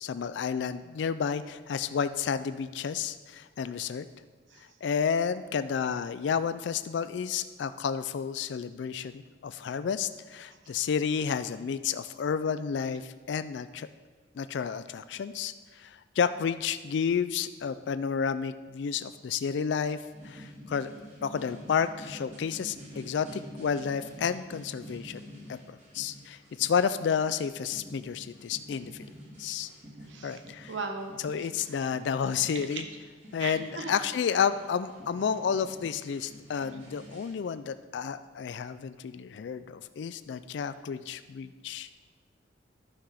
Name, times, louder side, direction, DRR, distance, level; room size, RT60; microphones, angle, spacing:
voice 1, 0.0-4.1 4.8-13.9 14.4-20.0 20.2-20.9 21.2-28.9 29.4-29.7 30.2-30.7 31.2-32.9 33.3-41.9, left 7 dB, 65° left, 13 dB, 0.3 m, -31 dB
sound 1, 20.1-37.4, equal, 40° right, 2.4 m, -48 dB
voice 2, 30.1-30.4 30.7-31.1 31.7-31.9 32.5-32.8 33.4-33.9 34.3-34.4, right 4 dB, 75° right, 5 dB, 1.1 m, -38 dB
11.0 x 5.9 x 4.9 m, 1.4 s
head